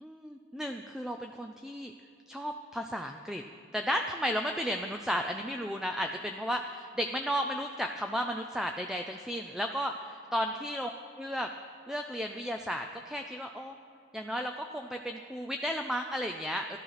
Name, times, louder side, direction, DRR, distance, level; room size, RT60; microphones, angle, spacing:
voice 1, 0.0-1.9 2.3-3.4 3.7-10.9 11.2-11.5 11.9-13.8 14.1-16.8, equal, 5° right, 4 dB, 0.4 m, -34 dB
13.5 x 12.5 x 5.8 m, 2.4 s
head